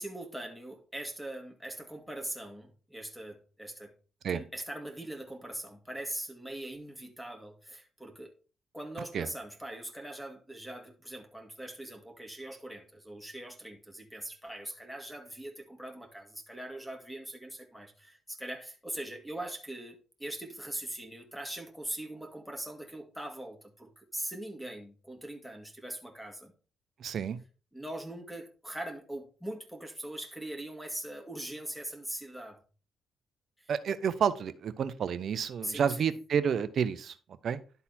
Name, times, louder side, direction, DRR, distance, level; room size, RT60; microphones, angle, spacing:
voice 1, 0.0-3.9 4.3-8.3 8.7-26.5 27.7-32.6 33.6-33.7 35.6-36.1, right 1 dB, ahead, 2.0 m, -41 dB
voice 2, 27.0-27.4 33.7-37.1 37.4-37.6, right 7 dB, 60° right, 0.7 m, -30 dB
11.5 x 4.0 x 4.3 m
cardioid pair, 90°, 0 cm